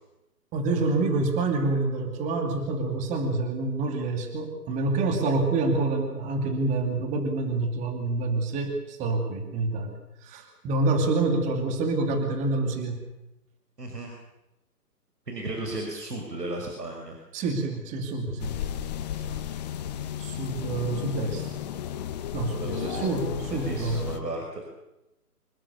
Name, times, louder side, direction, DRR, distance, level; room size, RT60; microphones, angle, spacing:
voice 1, 0.5-9.9 10.2-13.0 17.3-18.6 19.3-19.4 20.2-21.5 22.3-24.1, right 3 dB, 15° right, 5 dB, 2.7 m, -27 dB
voice 2, 13.8-14.1 15.3-17.2 22.5-23.1 23.4-24.6, right 2 dB, 80° right, 2 dB, 6.0 m, -34 dB
sound 1, 18.4-24.2, left 10 dB, 25° left, 1.3 m, -34 dB
26.5 x 20.0 x 7.0 m, 0.91 s
figure-of-eight pair, 145°, 48 cm